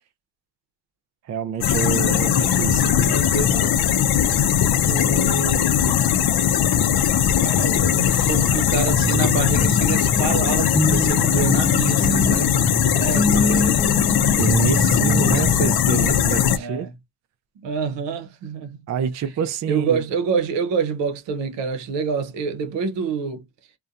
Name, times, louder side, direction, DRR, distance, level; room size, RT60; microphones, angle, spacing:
voice 1, 1.3-3.1 14.4-16.9 18.9-20.0, right 8 dB, 40° right, 0.5 m, -27 dB
sound 1, 1.6-16.6, left 9 dB, 60° left, 0.5 m, -19 dB
voice 2, 3.0-3.9 4.9-6.1 7.4-12.6 12.9-14.0 16.5-16.9 17.6-18.8 19.7-23.4, right 5 dB, 80° right, 0.8 m, -27 dB
sound 2, 7.2-7.3 7.8-7.9 8.3-8.4 9.0-15.8, left 1 dB, 20° left, 1.1 m, -25 dB
2.6 x 2.2 x 2.3 m
supercardioid pair, 60°, 43 cm